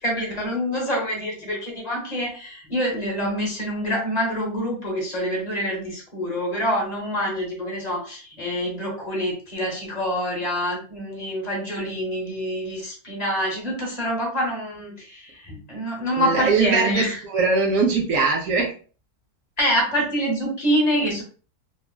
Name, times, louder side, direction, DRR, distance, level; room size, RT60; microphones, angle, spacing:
voice 1, 0.0-17.2 19.6-21.2, equal, 30° left, -3 dB, 1.0 m, -26 dB
voice 2, 16.2-18.7, right 4 dB, 70° right, 1 dB, 0.8 m, -21 dB
3.2 x 2.3 x 2.2 m, 0.39 s
omnidirectional pair, 1.7 m